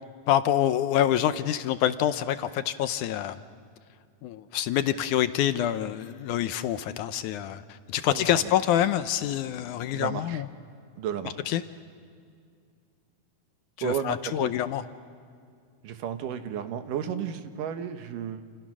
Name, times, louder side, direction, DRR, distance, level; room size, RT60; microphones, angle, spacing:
voice 1, 0.3-3.4 4.2-10.5 11.5-11.6 13.8-14.8, left 11 dB, 75° left, 11 dB, 2.1 m, -26 dB
voice 2, 9.9-10.4 11.0-11.4 13.8-14.5 15.8-18.4, right 8 dB, 75° right, 8 dB, 2.8 m, -33 dB
29.0 x 28.5 x 6.2 m, 2.2 s
omnidirectional pair, 3.8 m